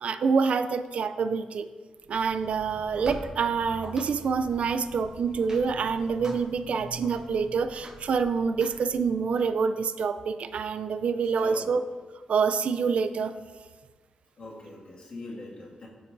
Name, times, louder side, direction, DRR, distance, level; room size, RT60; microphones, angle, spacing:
voice 1, 0.0-1.7 2.1-11.8 12.3-13.3, right 5 dB, 65° right, 10 dB, 0.4 m, -26 dB
sound 1, 2.0-9.4, right 1 dB, 30° right, 1.8 m, -45 dB
voice 2, 11.4-11.7 14.4-15.9, left 2 dB, 50° left, -5 dB, 2.0 m, -42 dB
13.5 x 4.6 x 2.6 m, 1.4 s
cardioid pair, 95°, 2 cm